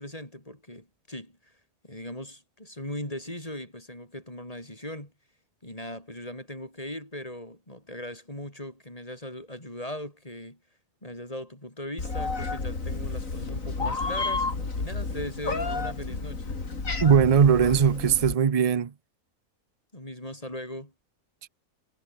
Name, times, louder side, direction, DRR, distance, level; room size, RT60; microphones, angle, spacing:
voice 1, 0.0-1.5 1.8-5.1 5.6-10.6 11.0-14.5 14.8-16.6 19.9-20.9, left 1 dB, 25° left, 6.0 m, -39 dB
Meow, 12.0-18.3, left 3 dB, 60° left, 3.6 m, -31 dB
voice 2, 17.0-18.9, right 7 dB, 40° right, 0.5 m, -20 dB
omnidirectional pair, 1.6 m